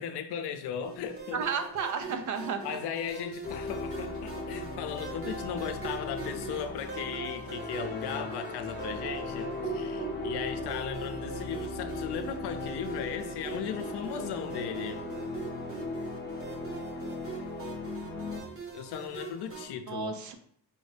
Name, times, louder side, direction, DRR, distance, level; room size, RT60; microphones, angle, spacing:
voice 1, 0.0-1.6 2.1-2.2 2.6-15.0 18.7-20.2, left 8 dB, 80° left, 8 dB, 0.6 m, -37 dB
sound 1, 0.8-19.6, right 6 dB, 35° right, 1.1 m, -42 dB
voice 2, 1.3-2.6 19.9-20.3, right 6 dB, 50° right, 7 dB, 0.5 m, -32 dB
sound 2, 3.4-18.4, left 3 dB, 25° left, 0.6 m, -38 dB
4.8 x 2.6 x 3.3 m, 0.63 s
cardioid pair, 130°, 39 cm